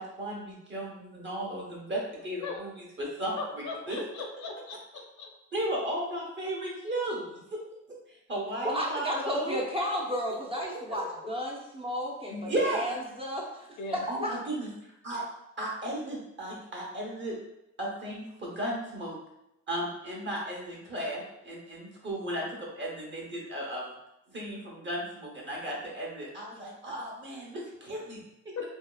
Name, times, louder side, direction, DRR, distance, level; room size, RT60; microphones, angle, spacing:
voice 1, 0.0-3.4 3.9-4.0 5.5-7.4 8.1-9.6 12.3-12.8 14.1-14.7 15.0-15.2 15.6-17.3 17.8-19.1 19.7-23.9 24.3-28.7, right 1 dB, 40° right, -4 dB, 0.9 m, -35 dB
voice 2, 3.4-5.3 13.8-14.0 28.6-28.7, left 4 dB, 70° left, 2 dB, 0.6 m, -38 dB
voice 3, 8.6-14.3, equal, 20° right, -2 dB, 0.5 m, -33 dB
2.7 x 2.3 x 2.3 m, 0.85 s
cardioid pair, 90°, 30 cm